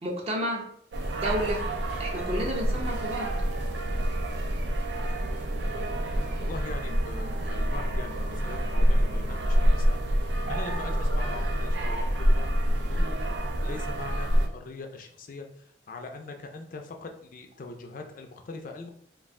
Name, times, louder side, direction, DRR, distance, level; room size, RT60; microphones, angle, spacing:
voice 1, 0.0-0.7 1.1-1.6 2.0-3.4, equal, 35° right, 0 dB, 0.7 m, -31 dB
sound 1, 0.9-14.5, equal, 70° right, 0.4 m, -27 dB
voice 2, 5.6-13.2 13.6-18.9, left 3 dB, 50° left, 4 dB, 0.4 m, -42 dB
3.1 x 2.4 x 3.5 m, 0.65 s
head